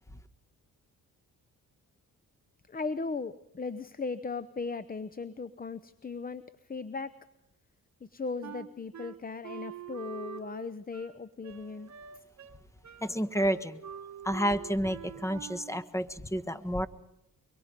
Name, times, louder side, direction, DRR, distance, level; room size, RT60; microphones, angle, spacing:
voice 1, 2.7-6.4 6.7-7.1 8.0-11.9, left 4 dB, 25° left, 15 dB, 0.8 m, -37 dB
Wind instrument woodwind instrument, 8.4-15.9, right 9 dB, 50° right, 1.3 m, -45 dB
voice 2, 13.0-13.8 14.2-16.9, equal, 10° left, 12 dB, 1.3 m, -30 dB
24.0 x 24.0 x 5.3 m, 0.85 s
cardioid pair, 65°, 35 cm